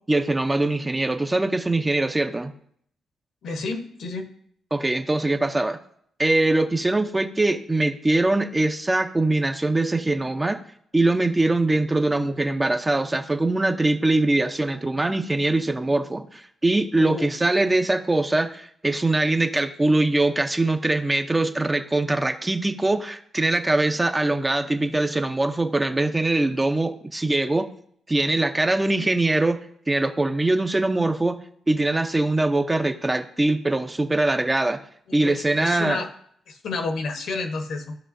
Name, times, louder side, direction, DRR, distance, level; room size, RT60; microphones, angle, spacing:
voice 1, 0.1-2.5 4.7-5.8 6.2-10.6 10.9-27.7 28.1-31.4 31.7-34.8 35.1-36.0, right 2 dB, 15° right, 6 dB, 0.5 m, -22 dB
voice 2, 3.4-4.3 17.0-17.3 35.1-36.1 36.5-38.0, left 3 dB, 65° left, 6 dB, 1.0 m, -30 dB
14.5 x 5.5 x 2.6 m, 0.66 s
cardioid pair, 150°, 0 cm